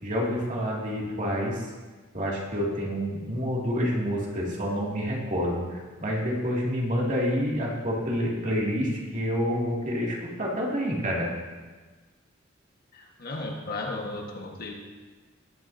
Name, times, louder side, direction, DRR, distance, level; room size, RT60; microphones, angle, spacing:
voice 1, 0.0-1.7 2.1-11.3, equal, 40° right, -4 dB, 2.6 m, -28 dB
voice 2, 12.9-14.7, left 2 dB, 50° left, 0 dB, 1.7 m, -35 dB
19.0 x 9.7 x 2.8 m, 1.3 s
head